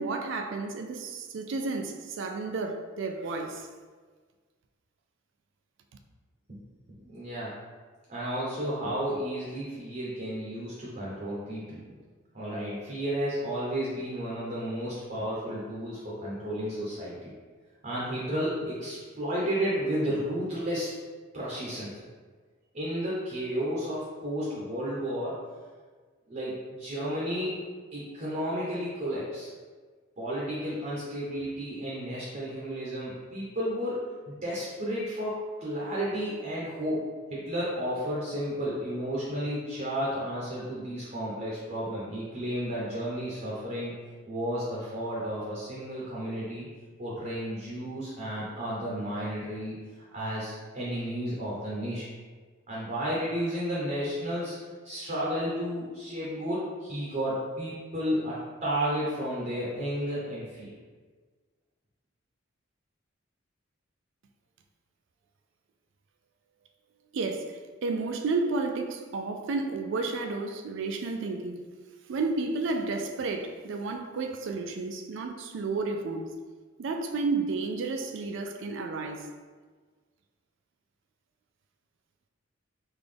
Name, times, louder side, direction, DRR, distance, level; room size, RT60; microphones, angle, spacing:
voice 1, 0.0-3.7 67.1-71.6 72.1-76.3 76.8-79.3, right 3 dB, 60° right, 0.3 m, -32 dB
voice 2, 7.0-7.6 8.1-12.0 12.3-17.3 17.8-21.0 21.3-21.9 22.7-25.4 26.3-27.6 27.9-29.5 30.2-34.0 34.3-43.9 44.3-46.7 47.0-52.0 52.7-54.6 54.8-58.3 58.6-60.8, equal, 40° right, 0.8 m, -32 dB
3.8 x 2.4 x 3.3 m
head